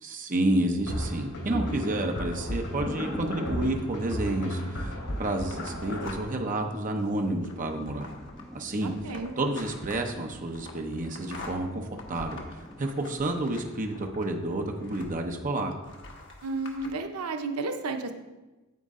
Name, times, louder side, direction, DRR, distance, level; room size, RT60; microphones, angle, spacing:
voice 1, 0.0-8.1 8.5-8.9 9.4-12.4 12.8-15.8, right 1 dB, 35° right, 3 dB, 0.8 m, -30 dB
sound 1, 0.9-6.1, equal, 80° left, 2.9 m, -34 dB
Thunder / Rain, 1.4-13.7, equal, ahead, 0.6 m, -43 dB
sound 2, 5.5-6.5 7.0-15.4 15.8-16.9, left 3 dB, 55° left, 1.3 m, -46 dB
voice 2, 8.8-9.3 16.4-18.1, right 3 dB, 90° right, 6 dB, 0.8 m, -32 dB
9.5 x 7.8 x 3.7 m, 1.1 s
head